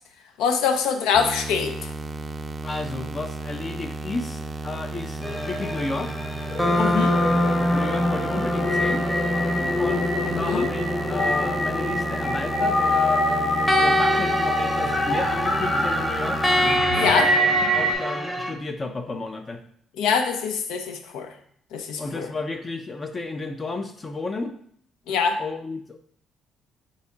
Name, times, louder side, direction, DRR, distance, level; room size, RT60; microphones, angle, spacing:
voice 1, 0.4-1.9 6.8-7.1 10.3-10.7 16.9-17.3 20.0-21.3 21.7-22.3 25.1-25.4, left 6 dB, 85° left, 6 dB, 0.5 m, -24 dB
sound 1, 1.1-16.8, right 3 dB, 30° right, 0.4 m, -34 dB
voice 2, 2.6-6.2 7.7-9.1 9.8-16.4 17.0-19.6 22.0-24.6 25.4-26.0, left 3 dB, 35° left, 6 dB, 0.5 m, -32 dB
sound 2, 5.2-18.5, left 1 dB, 10° left, 0.8 m, -26 dB
sound 3, 6.4-17.9, left 1 dB, 50° left, 1.6 m, -25 dB
4.0 x 3.6 x 3.6 m, 0.64 s
cardioid pair, 75°, 0 cm